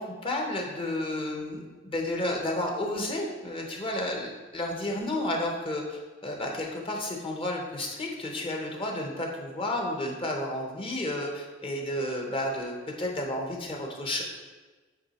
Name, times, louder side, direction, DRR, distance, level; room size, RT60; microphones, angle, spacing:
voice 1, 0.0-14.2, left 1 dB, 30° left, 0 dB, 0.9 m, -32 dB
8.7 x 3.2 x 4.2 m, 1.3 s
head